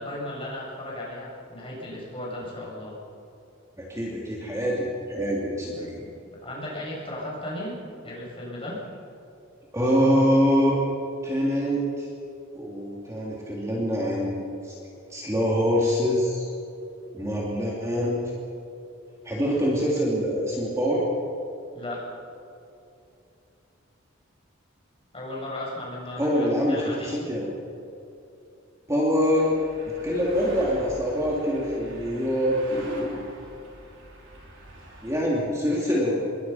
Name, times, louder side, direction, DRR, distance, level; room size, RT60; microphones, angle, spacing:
voice 1, 0.0-3.0 5.7-8.8 21.7-22.0 25.1-27.2, left 1 dB, 25° left, -5 dB, 8.0 m, -36 dB
voice 2, 3.8-6.0 9.7-10.8 11.2-12.1 12.5-14.8 15.1-16.5 17.1-18.2 19.2-21.1 26.2-27.5 28.9-29.6 30.0-33.2 35.0-36.2, equal, 15° right, -4 dB, 3.1 m, -24 dB
sound 1, 29.3-35.3, right 1 dB, 60° right, 5.1 m, -45 dB
27.5 x 22.5 x 5.9 m, 2.7 s
head